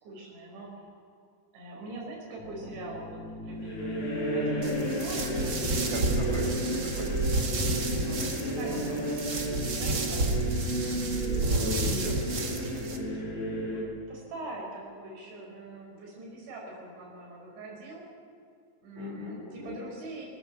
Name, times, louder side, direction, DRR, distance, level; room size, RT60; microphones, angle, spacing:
voice 1, 0.0-1.1 1.5-4.0 4.3-6.4 7.4-9.2 9.7-10.4 13.7-18.0 18.8-20.3, right 2 dB, 85° right, -2 dB, 7.8 m, -43 dB
sound 1, 2.4-13.8, right 1 dB, 40° left, 5.3 m, -33 dB
sound 2, 4.6-13.0, right 2 dB, 65° right, 1.0 m, -31 dB
voice 2, 5.9-6.4 6.8-7.2 11.4-13.2 19.0-19.8, left 1 dB, 15° right, 1 dB, 3.4 m, -38 dB
20.0 x 18.5 x 7.4 m, 2.3 s
omnidirectional pair, 5.1 m